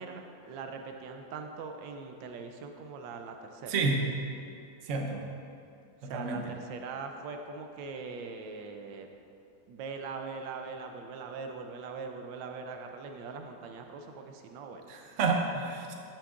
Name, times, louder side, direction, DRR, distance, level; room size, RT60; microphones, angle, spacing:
voice 1, 0.0-3.7 6.0-9.1 9.7-14.8, right 4 dB, 85° right, 5 dB, 1.3 m, -41 dB
voice 2, 3.7-4.0 4.8-5.2 6.0-6.4 14.9-15.9, right 3 dB, 50° right, 1 dB, 1.0 m, -30 dB
13.0 x 7.4 x 2.5 m, 2.5 s
omnidirectional pair, 2.0 m